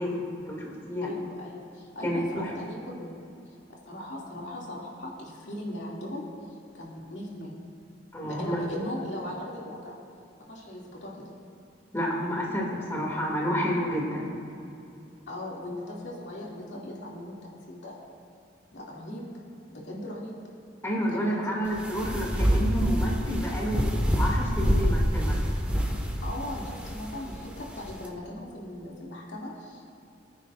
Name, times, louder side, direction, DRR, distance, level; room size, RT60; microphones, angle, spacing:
voice 1, 0.0-1.1 2.0-2.5 8.1-8.6 11.9-14.3 20.8-25.4, equal, 15° left, -3 dB, 2.5 m, -30 dB
voice 2, 1.0-3.2 3.9-6.3 6.7-7.5 8.2-9.9 10.5-11.3 15.3-18.0 18.7-19.3 19.8-20.3 21.0-21.4 26.2-29.9, left 1 dB, 70° left, -4 dB, 2.5 m, -38 dB
sound 1, 21.6-28.1, equal, 5° right, 1.6 m, -27 dB
25.5 x 9.8 x 2.6 m, 2.7 s
head